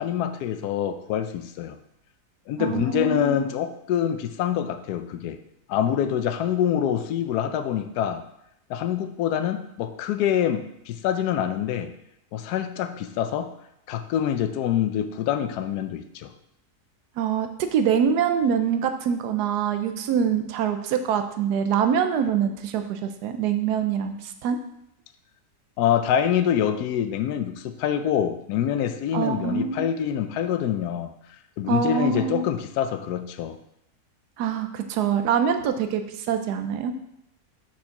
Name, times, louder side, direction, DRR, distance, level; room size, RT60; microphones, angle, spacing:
voice 1, 0.0-1.8 2.5-5.4 5.7-8.2 8.7-11.9 12.3-13.5 13.9-16.3 25.8-31.1 31.6-33.6, left 9 dB, 75° left, 9 dB, 1.1 m, -25 dB
voice 2, 2.6-3.4 17.2-24.6 29.1-29.8 31.7-32.4 34.4-36.9, right 7 dB, 80° right, 7 dB, 1.2 m, -24 dB
6.2 x 4.4 x 5.7 m, 0.78 s
omnidirectional pair, 1.7 m